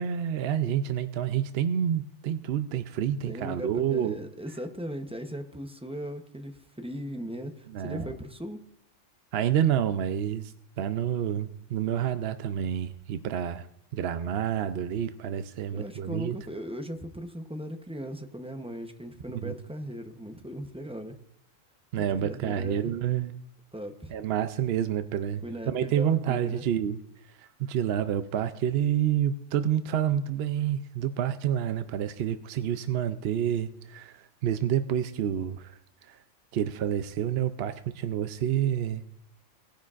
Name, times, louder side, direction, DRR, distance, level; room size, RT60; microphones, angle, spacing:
voice 1, 0.0-4.2 7.7-8.1 9.3-13.7 13.9-16.4 19.3-19.6 21.9-23.3 24.1-25.4 25.7-27.0 27.4-36.2 36.5-39.0, right 9 dB, 65° right, 10 dB, 0.7 m, -28 dB
voice 2, 3.3-8.6 15.7-21.2 22.0-22.9 23.7-24.1 25.4-26.6, equal, 5° right, 5 dB, 0.6 m, -38 dB
18.0 x 10.0 x 2.5 m, 0.69 s
omnidirectional pair, 1.3 m